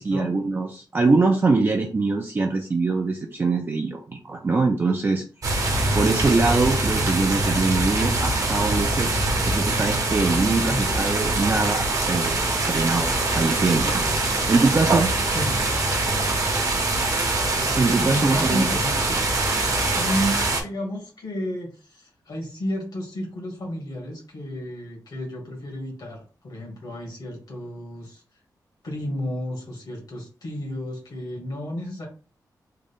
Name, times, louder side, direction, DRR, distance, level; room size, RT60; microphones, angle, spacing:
voice 1, 0.0-5.2 5.9-9.1 9.5-14.1 14.5-15.1 17.8-18.6, right 3 dB, 30° right, 2 dB, 0.4 m, -23 dB
sound 1, 5.4-20.6, right 2 dB, 50° right, 0.9 m, -23 dB
voice 2, 18.0-19.5 20.0-20.3 20.6-28.2 28.8-32.1, equal, 65° left, 0 dB, 1.7 m, -32 dB
3.8 x 2.2 x 3.5 m, 0.36 s
wide cardioid pair, 165°, 7 cm